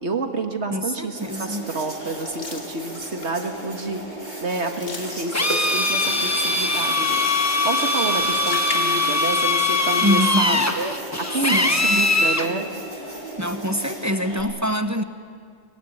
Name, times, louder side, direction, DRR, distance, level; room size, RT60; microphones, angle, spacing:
voice 1, 0.0-4.0 4.4-7.3 7.6-12.7, right 3 dB, 60° right, 5 dB, 1.8 m, -29 dB
voice 2, 0.7-1.7 10.0-10.7 11.5-12.1 13.4-15.0, equal, 15° right, 8 dB, 0.8 m, -25 dB
sound 1, 1.1-14.4, right 1 dB, 35° right, 5.9 m, -36 dB
sound 2, 2.1-3.4 3.8-4.1 4.4-6.1 7.9-9.6 10.0-10.1 10.9-11.8, left 1 dB, 70° left, 3.0 m, -36 dB
Drill, 5.3-12.5, left 2 dB, 15° left, 1.1 m, -21 dB
24.0 x 21.0 x 9.9 m, 2.1 s
omnidirectional pair, 1.3 m